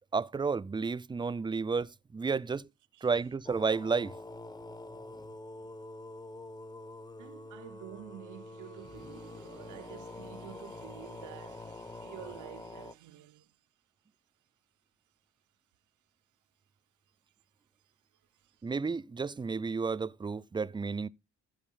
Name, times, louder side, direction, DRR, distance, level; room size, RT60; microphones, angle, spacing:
voice 1, 0.1-2.7 3.0-4.1 18.6-21.1, right 4 dB, 15° right, 0.4 m, -32 dB
sound 1, 3.5-12.9, left 2 dB, 15° left, 0.7 m, -46 dB
voice 2, 5.3-5.7 7.2-13.6 17.8-18.7, right 14 dB, 75° right, 0.9 m, -50 dB
15.0 x 5.1 x 3.8 m
cardioid pair, 90°, 30 cm